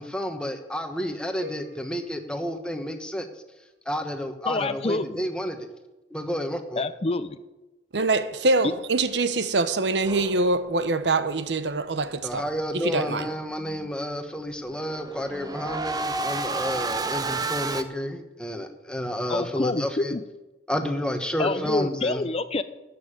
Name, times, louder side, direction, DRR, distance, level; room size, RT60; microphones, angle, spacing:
voice 1, 0.0-3.3 3.8-5.7 6.1-6.8 12.2-20.1 20.7-22.2, equal, 5° left, 1.1 m, -30 dB
sound 1, 1.4-3.5, left 2 dB, 55° right, 1.6 m, -45 dB
voice 2, 4.4-5.2 6.8-7.4 8.6-8.7 13.6-13.9 15.3-15.5 19.3-20.2 21.4-22.6, left 3 dB, 35° left, 0.5 m, -27 dB
voice 3, 7.9-12.4 12.7-13.3, right 3 dB, 85° right, 0.9 m, -24 dB
sound 2, 10.0-10.9 14.7-17.8, right 3 dB, 20° right, 0.7 m, -31 dB
13.5 x 6.9 x 8.9 m
head